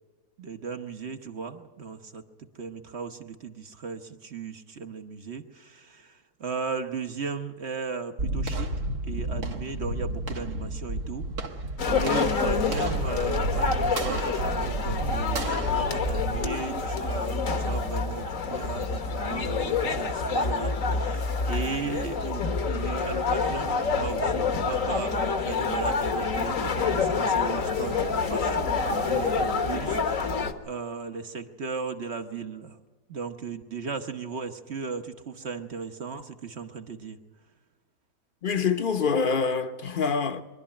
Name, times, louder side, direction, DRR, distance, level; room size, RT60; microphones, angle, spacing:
voice 1, 0.4-2.2 2.6-8.7 9.0-11.3 11.9-32.8 33.1-37.2, right 5 dB, 50° right, 1.2 m, -36 dB
sound 1, 8.2-17.3, right 2 dB, 70° right, 1.9 m, -31 dB
sound 2, 11.8-30.5, left 4 dB, 60° left, 1.6 m, -27 dB
voice 2, 38.4-40.4, left 5 dB, 40° left, 1.1 m, -25 dB
23.5 x 12.0 x 9.8 m
omnidirectional pair, 1.7 m